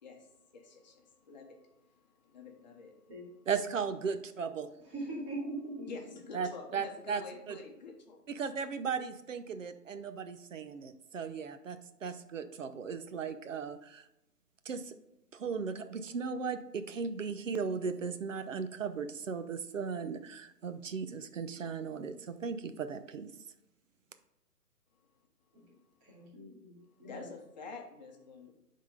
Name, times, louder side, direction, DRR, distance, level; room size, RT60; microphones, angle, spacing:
voice 1, 0.0-3.2 5.9-8.2 27.0-28.5, left 4 dB, 30° left, 2 dB, 0.9 m, -48 dB
voice 2, 3.5-4.7 6.3-7.2 7.5-7.6 8.3-14.0 14.7-14.9 15.3-23.3, right 5 dB, 55° right, 11 dB, 0.7 m, -37 dB
voice 3, 4.9-5.9 26.0-27.3, right 1 dB, 20° right, -8 dB, 2.3 m, -41 dB
10.0 x 3.8 x 3.6 m, 0.89 s
figure-of-eight pair, 145°, 48 cm